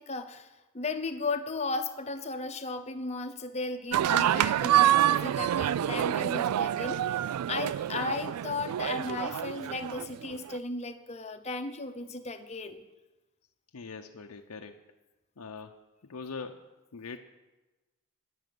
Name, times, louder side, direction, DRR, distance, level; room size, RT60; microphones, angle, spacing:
voice 1, 0.0-12.8, left 3 dB, 30° left, 8 dB, 0.8 m, -35 dB
sound 1, 3.9-10.6, right 11 dB, 85° right, 0.3 m, -27 dB
voice 2, 13.7-14.8 15.4-15.8 16.0-16.6 16.9-17.2, left 4 dB, 80° left, 4 dB, 0.7 m, -42 dB
13.0 x 6.3 x 9.3 m, 1.1 s
head